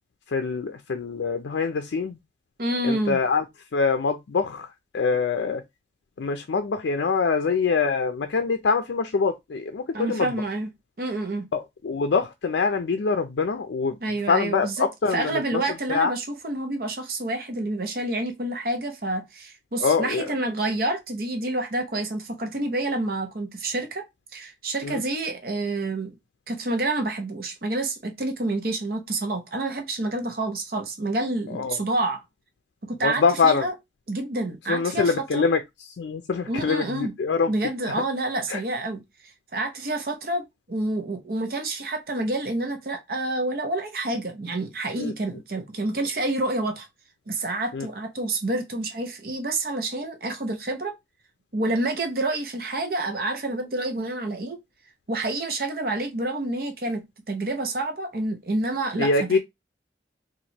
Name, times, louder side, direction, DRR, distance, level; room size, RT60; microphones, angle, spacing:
voice 1, 0.3-2.2 2.8-3.4 3.7-5.6 6.2-10.4 11.5-14.0 14.3-15.6 15.9-16.1 19.8-20.3 24.8-25.0 31.5-31.8 33.0-33.7 34.7-35.6 35.9-37.5 38.5-38.6 45.0-45.1 47.7-47.9 59.0-59.4, left 4 dB, 85° left, 0.4 m, -24 dB
voice 2, 2.6-3.2 9.9-10.7 11.0-11.4 14.0-14.9 15.1-24.1 24.3-26.1 26.5-32.2 32.9-33.7 34.1-35.5 36.5-37.1 37.5-39.0 39.5-46.9 47.3-50.9 51.5-54.6 55.1-57.0 57.3-59.4, right 2 dB, 55° right, 0.8 m, -28 dB
2.9 x 2.5 x 4.2 m
head